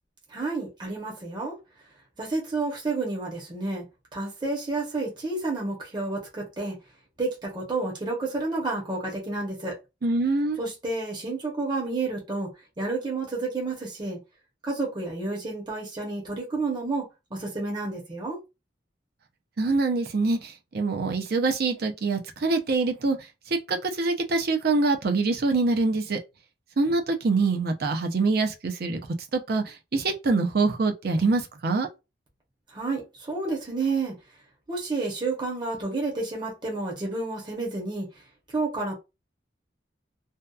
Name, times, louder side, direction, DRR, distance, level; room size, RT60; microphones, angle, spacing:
voice 1, 0.3-1.5 2.2-3.8 4.1-6.8 7.2-9.7 10.6-12.5 12.8-14.2 14.6-17.1 17.3-18.4 32.7-34.1 34.7-38.1 38.5-38.9, right 3 dB, 25° right, 0.7 m, -30 dB
voice 2, 10.0-10.6 19.6-23.2 23.7-26.2 26.8-29.0 29.3-29.6 29.9-31.9, right 3 dB, 60° right, 0.5 m, -24 dB
2.7 x 2.2 x 2.3 m
head